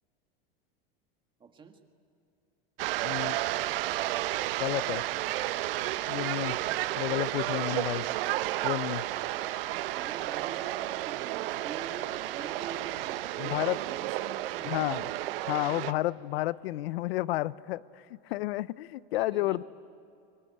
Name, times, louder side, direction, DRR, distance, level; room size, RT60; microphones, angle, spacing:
voice 1, 1.4-1.8 9.2-15.2 16.4-16.5 18.4-18.5 19.1-19.6, right 5 dB, 15° right, 5 dB, 1.6 m, -47 dB
sound 1, 2.8-15.9, right 15 dB, 75° right, 0.9 m, -32 dB
voice 2, 3.0-3.4 4.6-5.0 6.1-6.6 7.0-8.1 8.6-9.0 13.4-13.8 14.6-15.0 15.5-19.6, left 17 dB, 90° left, 19 dB, 0.7 m, -31 dB
24.0 x 23.5 x 9.8 m, 2.6 s
supercardioid pair, 155°, 29 cm